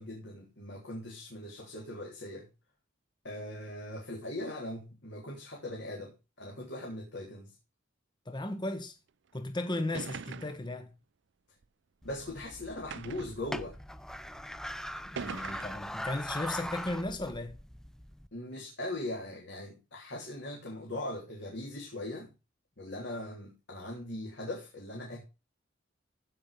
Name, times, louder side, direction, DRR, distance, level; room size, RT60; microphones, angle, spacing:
voice 1, 0.0-2.5 3.2-7.5 12.0-13.8 18.3-22.3 22.8-25.2, left 1 dB, 60° left, 3.3 m, -40 dB
voice 2, 8.3-9.0 9.3-10.9 15.1-17.6, left 2 dB, 25° left, 1.0 m, -35 dB
Bucket Dropping, 9.3-9.4 9.9-10.7 11.6-11.7 12.9-13.4 14.3-14.4 15.2-15.9, right 6 dB, 65° right, 0.5 m, -42 dB
sound 1, 12.0-18.3, equal, 5° left, 0.5 m, -41 dB
15.0 x 5.4 x 5.2 m
head